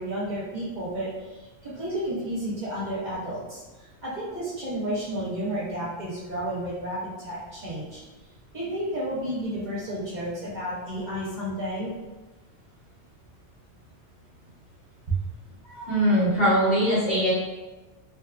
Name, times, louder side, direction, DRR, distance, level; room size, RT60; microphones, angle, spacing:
voice 1, 0.0-8.0 8.5-11.9 15.1-15.2, right 1 dB, 45° right, -8 dB, 0.7 m, -31 dB
voice 2, 15.6-17.3, equal, 60° left, -9 dB, 1.2 m, -22 dB
2.7 x 2.3 x 2.3 m, 1.2 s
omnidirectional pair, 1.1 m